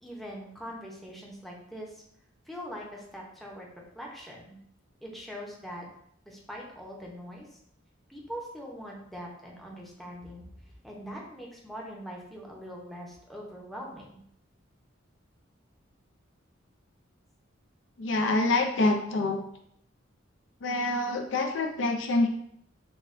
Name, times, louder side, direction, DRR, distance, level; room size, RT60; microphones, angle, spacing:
voice 1, 0.0-2.0 2.5-3.7 3.9-4.6 5.0-5.9 6.2-7.6 8.1-10.5 10.8-14.2, equal, ahead, -2 dB, 0.6 m, -42 dB
voice 2, 18.0-19.4 20.6-22.3, left 2 dB, 70° left, 3 dB, 0.5 m, -26 dB
6.0 x 2.2 x 2.5 m, 0.70 s
head